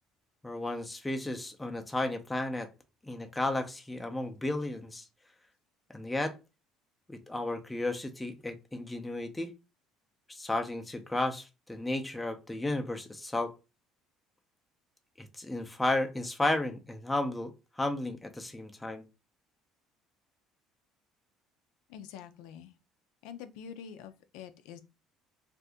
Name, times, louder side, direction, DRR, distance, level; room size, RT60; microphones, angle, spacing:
voice 1, 0.4-2.7 3.0-5.1 5.9-6.3 7.1-9.5 10.3-13.5 15.2-19.0, left 2 dB, 10° left, 0.5 m, -33 dB
voice 2, 21.9-22.7 23.2-24.8, left 8 dB, 85° left, 0.4 m, -46 dB
2.6 x 2.5 x 3.4 m
cardioid pair, 125°, 0 cm